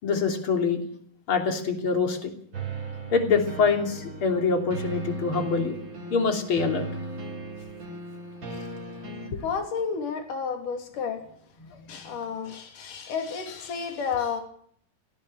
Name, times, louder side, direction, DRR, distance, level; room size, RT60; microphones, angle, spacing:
voice 1, 0.0-0.8 1.3-2.6 3.1-5.8 6.1-6.9 8.5-8.6 9.3-9.4 11.7-11.8, left 5 dB, 40° left, 5 dB, 3.6 m, -25 dB
sound 1, 2.5-9.3, right 2 dB, 30° right, 5.0 m, -37 dB
voice 2, 9.4-11.2 11.9-14.4, left 6 dB, 65° left, 5 dB, 4.5 m, -31 dB
18.5 x 18.0 x 8.7 m, 0.64 s
omnidirectional pair, 4.0 m